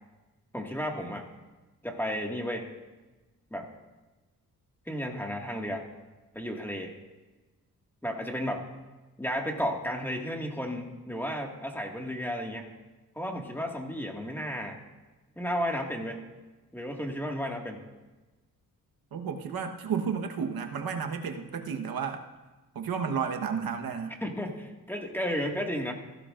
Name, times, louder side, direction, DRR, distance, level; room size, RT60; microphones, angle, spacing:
voice 1, 0.5-1.3 1.8-2.7 3.5-3.7 4.9-5.9 6.3-6.9 8.0-8.7 9.2-12.7 13.2-14.8 15.4-16.2 16.7-17.8 24.2-25.9, equal, 5° left, 1 dB, 1.9 m, -33 dB
voice 2, 19.1-22.2 22.7-24.2, right 6 dB, 70° right, 5 dB, 1.2 m, -32 dB
15.5 x 12.0 x 2.5 m, 1.2 s
cardioid pair, 65°, 37 cm